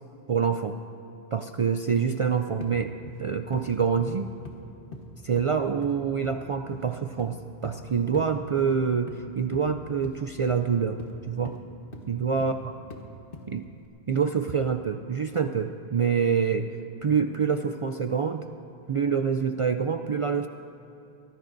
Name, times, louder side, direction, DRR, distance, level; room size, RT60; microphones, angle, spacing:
voice 1, 0.3-0.8 1.3-2.9 3.2-4.3 5.2-7.4 7.6-11.0 11.3-11.6 12.1-12.5 13.5-13.6 14.1-16.7 17.0-18.4 18.9-20.5, right 6 dB, 55° right, 7 dB, 0.3 m, -26 dB
sound 1, 2.6-2.8 3.1-3.3 3.5-3.7 4.0-4.2 4.5-4.6 4.9-5.5 5.8-6.0 6.2-6.5 6.7-6.9 7.2-7.3 7.6-7.8 8.1-8.3 8.6-9.2 9.5-9.7 10.0-10.2 10.5-10.6 11.0-11.2 11.5-11.6 11.9-12.0 12.4-12.6 12.9-13.0 13.3-13.5 13.8-13.9, left 2 dB, 60° left, 1.5 m, -41 dB
23.0 x 18.0 x 2.6 m, 2.7 s
omnidirectional pair, 1.0 m